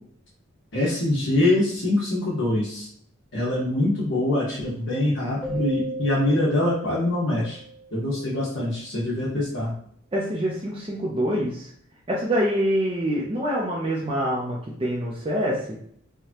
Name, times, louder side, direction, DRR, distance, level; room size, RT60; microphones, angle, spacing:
voice 1, 0.7-2.9 3.3-7.6 7.9-9.7, left 1 dB, 65° left, -6 dB, 1.2 m, -24 dB
Keyboard (musical), 5.4-8.2, right 2 dB, 10° left, 1.2 m, -36 dB
voice 2, 10.1-11.7 12.1-15.7, equal, 25° right, -4 dB, 0.6 m, -25 dB
4.9 x 2.3 x 2.8 m, 0.63 s
head